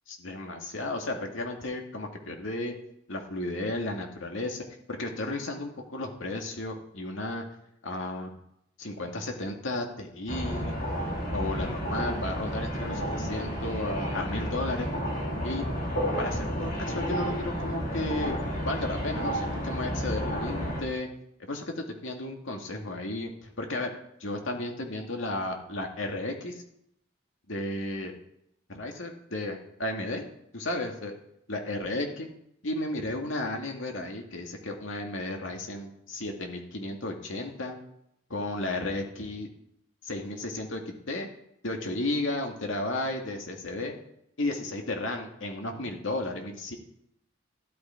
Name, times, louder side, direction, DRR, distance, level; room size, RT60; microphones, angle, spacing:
voice 1, 0.2-2.8 3.1-7.4 7.8-8.3 8.8-10.8 11.3-14.9 15.4-15.7 16.2-18.4 18.6-21.1 21.5-23.9 24.2-26.6 27.5-28.2 28.7-30.3 30.5-31.1 31.5-32.3 32.6-37.8 38.3-39.5 40.0-41.3 41.6-43.9 44.4-46.8, left 2 dB, 80° left, 2 dB, 2.2 m, -33 dB
sound 1, 10.3-20.8, equal, 45° left, 3.4 m, -31 dB
13.0 x 11.5 x 4.5 m, 0.76 s
head